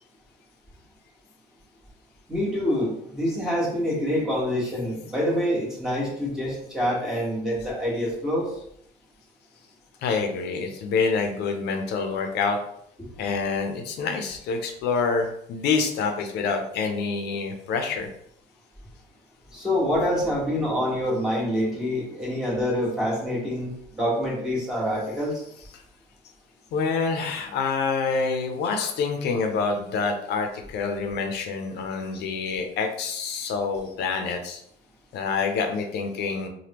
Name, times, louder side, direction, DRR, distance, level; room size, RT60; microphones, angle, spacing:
voice 1, 2.3-8.5 19.5-25.4, equal, 5° right, -6 dB, 1.3 m, -26 dB
voice 2, 10.0-12.6 13.2-18.1 26.7-34.6 35.1-36.5, left 4 dB, 75° left, 4 dB, 0.6 m, -27 dB
3.4 x 2.2 x 2.9 m, 0.70 s
cardioid pair, 110°, 17 cm